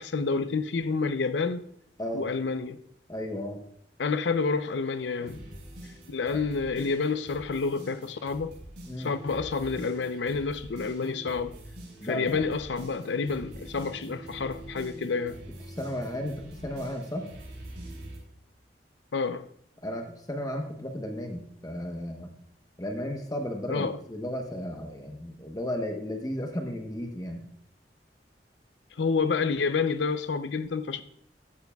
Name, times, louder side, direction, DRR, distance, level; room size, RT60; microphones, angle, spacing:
voice 1, 0.0-1.7 2.1-2.8 4.0-5.4 6.1-8.5 9.0-11.5 12.0-15.4 19.1-19.5 23.7-24.0 29.0-31.0, left 4 dB, 90° left, 0.5 m, -29 dB
voice 2, 3.1-3.6 6.3-6.4 8.9-9.1 12.0-12.4 15.8-17.3 19.8-22.3 22.8-27.4, left 1 dB, 20° left, 1.0 m, -34 dB
sound 1, 5.2-18.2, right 1 dB, 85° right, 4.4 m, -45 dB
14.5 x 9.4 x 2.3 m
head